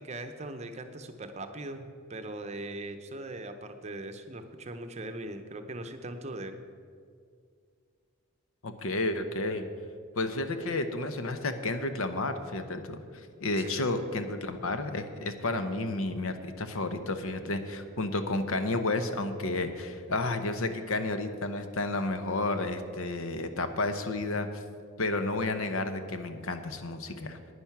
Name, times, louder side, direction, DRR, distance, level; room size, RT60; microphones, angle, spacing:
voice 1, 0.0-6.6 13.6-14.1, right 2 dB, 30° right, 7 dB, 0.7 m, -40 dB
voice 2, 8.6-9.6 10.2-24.6 25.0-27.4, left 2 dB, 80° left, 8 dB, 0.9 m, -31 dB
10.5 x 9.8 x 5.9 m, 2.2 s
head